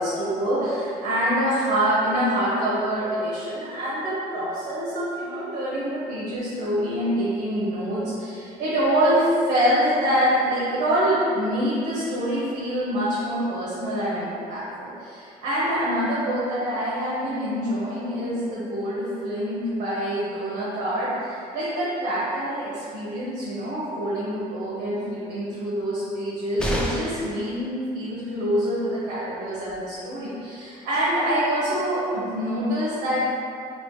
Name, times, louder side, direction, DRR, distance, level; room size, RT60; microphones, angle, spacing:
voice 1, 0.0-33.3, equal, 80° right, -9 dB, 0.9 m, -25 dB
sound 1, 26.6-27.3 29.3-29.4 29.7-29.8, equal, 5° left, 0.4 m, -27 dB
3.1 x 3.0 x 3.1 m, 2.4 s
cardioid pair, 110°, 17 cm